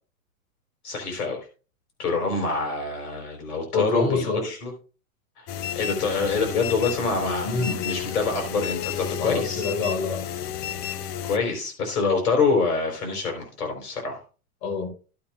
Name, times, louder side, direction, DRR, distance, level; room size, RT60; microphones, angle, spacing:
voice 1, 0.8-1.4 2.0-4.7 5.4-5.5 5.7-9.6 11.2-14.2, left 4 dB, 85° left, 4.4 m, -26 dB
voice 2, 3.7-4.5 7.4-7.8 9.2-10.3 14.6-14.9, left 4 dB, 55° left, 5.7 m, -26 dB
sound 1, 5.5-11.4, left 10 dB, 25° left, 0.4 m, -32 dB
15.0 x 8.6 x 2.5 m
hypercardioid pair, 130°, 44 cm